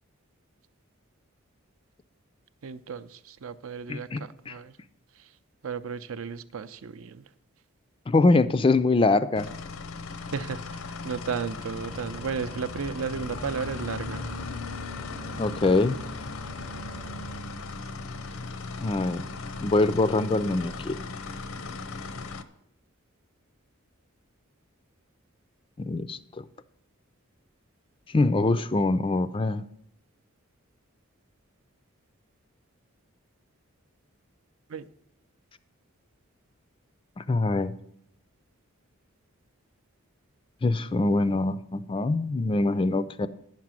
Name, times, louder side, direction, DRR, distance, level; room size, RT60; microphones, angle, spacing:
voice 1, 2.6-4.7 5.2-5.3 5.6-7.2 10.3-14.3 34.7-34.8, right 5 dB, 75° right, 13 dB, 0.5 m, -34 dB
voice 2, 3.9-4.6 8.1-9.5 15.3-16.0 18.8-19.2 19.6-21.0 25.8-26.4 28.1-29.7 37.2-37.7 40.6-43.3, left 2 dB, 25° left, 14 dB, 0.3 m, -24 dB
sound 1, 9.4-22.4, left 3 dB, 80° left, 0.7 m, -37 dB
sound 2, 11.7-17.4, right 1 dB, 25° right, 0.6 m, -43 dB
10.0 x 5.9 x 7.4 m, 0.71 s
head